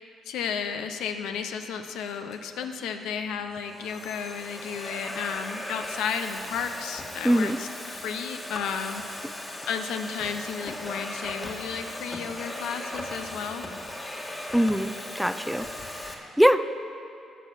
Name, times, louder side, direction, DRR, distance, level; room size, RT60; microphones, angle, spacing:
voice 1, 0.0-9.3 9.7-13.6, left 6 dB, 85° left, 7 dB, 0.8 m, -33 dB
Domestic sounds home sounds, 2.3-2.7 3.4-16.1, left 1 dB, 25° left, 1.7 m, -38 dB
voice 2, 7.2-7.6 14.5-15.7 16.0-16.1 16.4-16.7, equal, ahead, 10 dB, 0.5 m, -22 dB
15.0 x 6.3 x 7.3 m, 2.7 s
cardioid pair, 90°, 0 cm